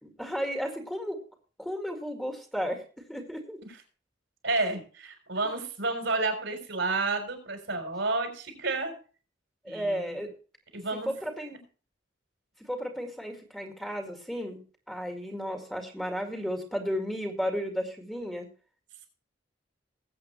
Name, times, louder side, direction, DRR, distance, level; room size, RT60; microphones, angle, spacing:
voice 1, 0.0-1.2 1.6-2.8 3.1-3.6 9.6-10.3 11.1-11.6 12.6-14.6 14.9-18.5, equal, ahead, 3 dB, 2.1 m, -33 dB
voice 2, 4.4-8.9 9.6-10.0 10.7-11.1, right 3 dB, 75° right, 4 dB, 4.0 m, -30 dB
20.0 x 8.2 x 3.2 m, 0.37 s
head